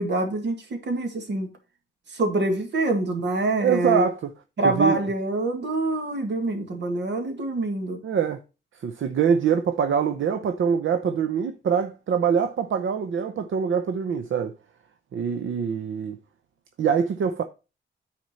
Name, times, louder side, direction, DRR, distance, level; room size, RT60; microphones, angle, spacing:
voice 1, 0.0-1.5 2.1-4.1 4.6-8.0, right 2 dB, 60° right, 1.9 m, -25 dB
voice 2, 3.6-4.3 4.6-5.0 8.0-8.4 8.8-14.5 15.1-16.2 16.8-17.4, right 7 dB, 75° right, 0.7 m, -24 dB
9.4 x 4.3 x 4.2 m
wide cardioid pair, 160°, 20 cm